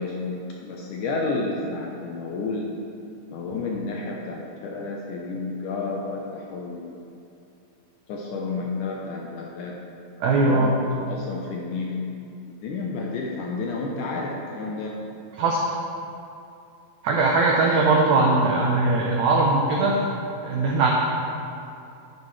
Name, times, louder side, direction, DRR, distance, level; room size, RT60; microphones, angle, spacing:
voice 1, 0.0-2.7 3.3-6.9 8.1-9.8 10.4-12.0 12.5-15.0, left 3 dB, 75° left, -1 dB, 1.9 m, -31 dB
voice 2, 10.2-10.8 15.4-15.6 17.0-20.0 20.4-20.9, right 3 dB, 85° right, -2 dB, 1.6 m, -20 dB
10.5 x 9.7 x 3.2 m, 2.6 s
omnidirectional pair, 4.4 m